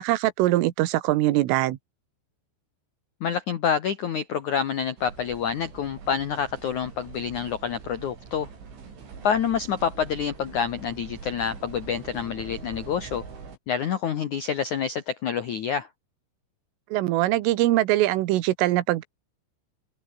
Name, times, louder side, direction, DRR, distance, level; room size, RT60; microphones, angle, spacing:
voice 1, 0.0-1.8 16.9-19.0, right 16 dB, 90° right, 3.8 m, -22 dB
voice 2, 3.2-8.5 9.2-13.2 13.7-15.9, left 7 dB, 75° left, 1.7 m, -27 dB
sound 1, 5.0-13.6, right 5 dB, 70° right, 8.9 m, -43 dB
open air
omnidirectional pair, 5.7 m